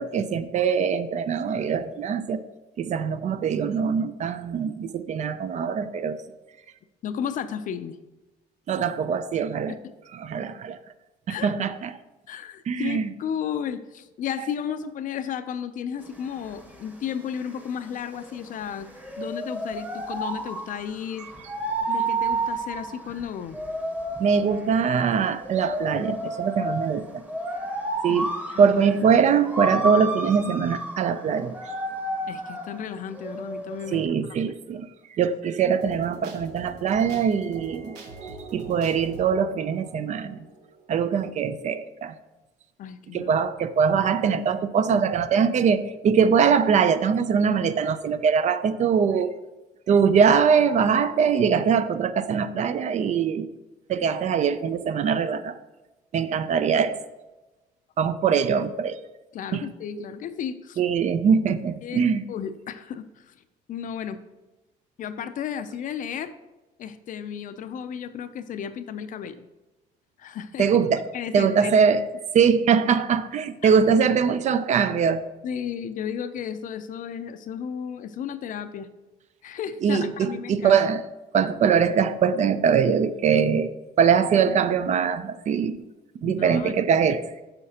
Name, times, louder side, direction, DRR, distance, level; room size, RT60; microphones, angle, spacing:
voice 1, 0.0-2.4 2.8-6.2 8.7-9.8 10.1-10.8 11.3-11.9 12.7-13.1 24.2-27.2 28.0-28.3 28.6-31.6 33.9-38.0 38.2-40.4 40.9-42.1 43.1-49.3 49.9-53.5 53.9-55.6 56.1-57.0 58.0-59.0 59.5-59.7 60.8-62.2 70.6-71.0 71.3-72.1 72.3-75.2 79.8-81.0 81.3-83.7 84.0-85.8 86.2-87.2, right 6 dB, 45° right, 13 dB, 0.4 m, -22 dB
voice 2, 7.0-8.0 9.7-9.9 11.3-11.5 12.3-18.9 19.2-21.3 21.9-23.6 28.1-28.2 32.3-34.5 42.8-43.3 59.3-60.8 61.8-62.0 62.3-63.3 63.7-64.2 65.0-66.3 66.8-69.5 70.2-70.7 71.1-71.7 73.6-73.7 75.4-78.9 79.4-80.8 86.2-86.9, left 8 dB, 50° left, 11 dB, 0.5 m, -33 dB
sound 1, 16.0-34.0, right 2 dB, 10° right, 1.0 m, -32 dB
sound 2, 35.7-41.2, right 3 dB, 80° right, 1.1 m, -43 dB
7.9 x 5.7 x 2.8 m, 1.1 s
cardioid pair, 110°, 17 cm